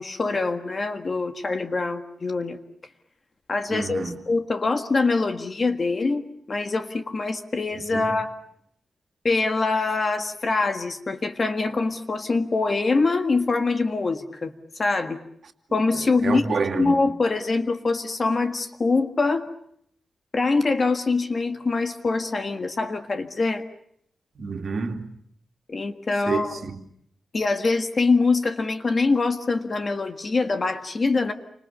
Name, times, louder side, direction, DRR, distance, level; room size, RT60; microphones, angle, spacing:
voice 1, 0.0-2.6 3.5-8.3 9.2-15.2 15.7-16.4 16.7-19.5 20.3-23.6 25.7-26.6 27.3-31.3, left 3 dB, 30° left, 1.6 m, -24 dB
voice 2, 3.7-4.1 7.9-8.1 16.2-16.9 24.4-25.1 26.3-26.7, right 4 dB, 45° right, 2.6 m, -28 dB
29.5 x 26.0 x 6.9 m
wide cardioid pair, 175°, 0 cm